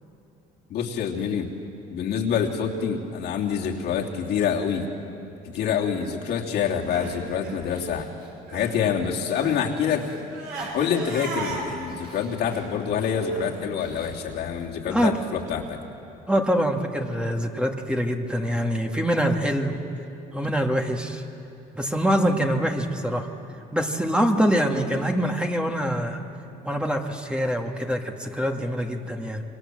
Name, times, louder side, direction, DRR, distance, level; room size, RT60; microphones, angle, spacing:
voice 1, 0.7-1.5 1.9-4.8 5.5-8.1 8.5-10.1 10.7-15.8, left 7 dB, 70° left, -1 dB, 3.0 m, -26 dB
Crying sobbing, 6.6-8.8 9.1-14.1, right 3 dB, 75° right, 7.2 m, -37 dB
voice 2, 16.3-19.8 20.3-21.2 21.8-23.3 23.7-26.2 26.6-29.4, equal, 5° right, 2 dB, 2.0 m, -24 dB
27.5 x 24.0 x 7.7 m, 2.7 s
cardioid pair, 110°, 17 cm